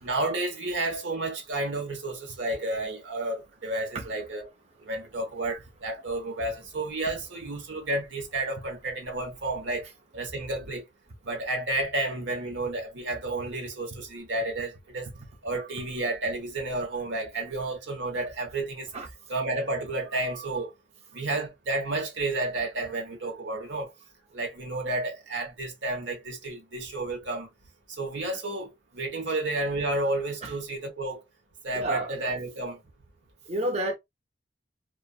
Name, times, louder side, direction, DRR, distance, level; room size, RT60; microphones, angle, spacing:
voice 1, 0.0-4.5 4.8-9.9 10.1-10.8 11.2-15.1 15.4-18.9 19.3-20.7 21.1-23.9 24.3-27.5 27.9-31.2 31.6-32.8, right 2 dB, 85° right, 1.0 m, -31 dB
voice 2, 31.8-32.1 33.5-33.9, right 1 dB, 35° right, 0.5 m, -29 dB
2.4 x 2.3 x 2.3 m
head